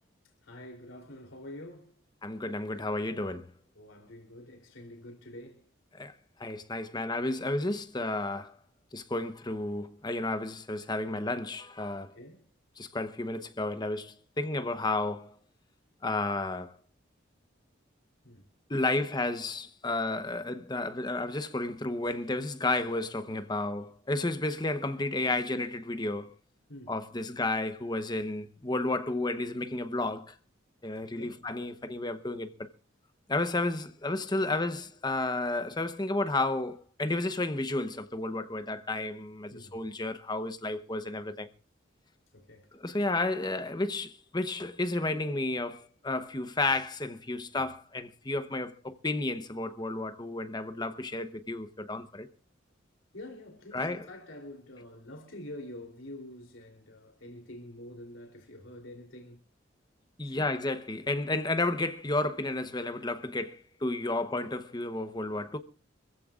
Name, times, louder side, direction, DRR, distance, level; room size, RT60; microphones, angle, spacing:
voice 1, 0.4-1.9 3.7-5.7 12.1-12.4 18.2-18.4 26.7-26.9 31.1-31.4 39.5-39.8 42.3-42.7 53.1-59.4 60.2-60.5, left 1 dB, 85° left, 3.4 m, -46 dB
voice 2, 2.2-3.5 5.9-6.1 6.4-8.6 8.9-12.2 12.8-15.3 16.0-16.7 18.7-26.4 26.9-30.3 30.8-32.7 33.3-41.5 42.7-52.3 53.7-54.1 60.2-65.6, left 2 dB, 20° left, 0.9 m, -32 dB
25.5 x 15.5 x 2.5 m
head